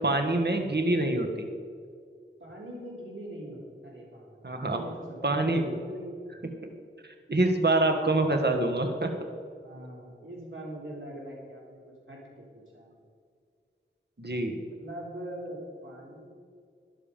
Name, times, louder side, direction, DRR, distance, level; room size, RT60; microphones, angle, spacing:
voice 1, 0.0-1.5 4.4-4.8 5.2-5.7 6.6-6.7 7.3-9.1 14.2-14.6, right 2 dB, 55° right, 3 dB, 1.5 m, -25 dB
voice 2, 2.4-6.2 9.6-12.9 14.7-16.3, right 1 dB, 90° right, -4 dB, 3.7 m, -42 dB
12.5 x 11.0 x 5.2 m, 2.2 s
wide cardioid pair, 45°, 20 cm